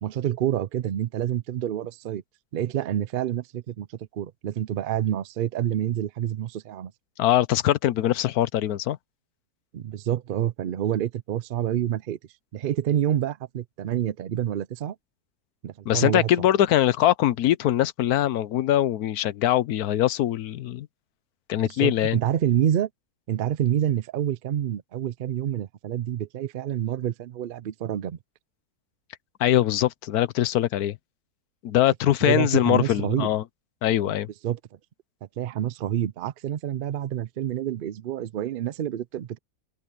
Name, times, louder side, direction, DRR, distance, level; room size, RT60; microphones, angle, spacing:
voice 1, 0.0-2.2 2.5-3.9 4.1-6.9 9.7-12.2 12.5-15.0 15.6-16.3 21.8-22.9 23.3-28.2 32.2-33.3 34.4-34.6 35.4-39.4, right 11 dB, 85° right, 0.4 m, -27 dB
voice 2, 7.2-9.0 15.9-20.9 21.5-22.2 29.4-31.0 31.6-33.4 33.8-34.3, left 12 dB, 80° left, 1.2 m, -22 dB
omnidirectional pair, 1.6 m